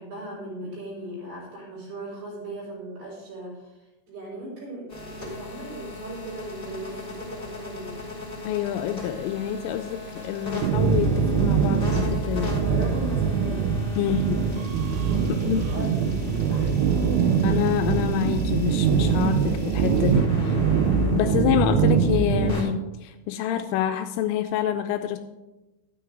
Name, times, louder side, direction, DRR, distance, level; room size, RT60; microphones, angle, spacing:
voice 1, 0.0-3.8 4.1-8.0 12.6-13.6 14.0-14.2 15.2-16.7, right 2 dB, 55° right, -5 dB, 6.1 m, -38 dB
sound 1, 4.9-22.6, left 2 dB, 10° left, 2.4 m, -38 dB
voice 2, 8.4-12.6 14.0-14.4 15.4-15.6 17.4-20.6 21.1-25.2, left 10 dB, 85° left, 7 dB, 2.9 m, -27 dB
sound 2, 10.6-22.5, right 6 dB, 85° right, 3.3 m, -23 dB
12.5 x 9.4 x 3.8 m, 1.1 s
omnidirectional pair, 5.9 m